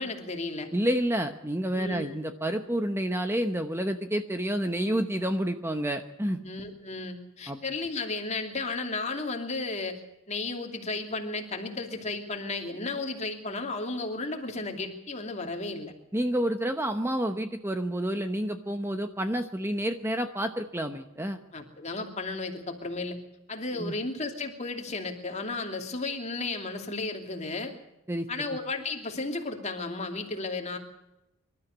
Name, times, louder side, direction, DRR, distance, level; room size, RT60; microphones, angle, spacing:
voice 1, 0.0-0.7 1.8-2.1 6.4-10.0 10.3-15.9 21.5-23.2 23.5-27.7 28.3-30.8, left 3 dB, 30° left, 4 dB, 2.8 m, -34 dB
voice 2, 0.7-6.4 7.5-7.6 16.1-21.4 23.7-24.0 28.1-28.6, right 1 dB, 10° right, 7 dB, 0.9 m, -29 dB
26.0 x 13.0 x 8.1 m, 0.93 s
head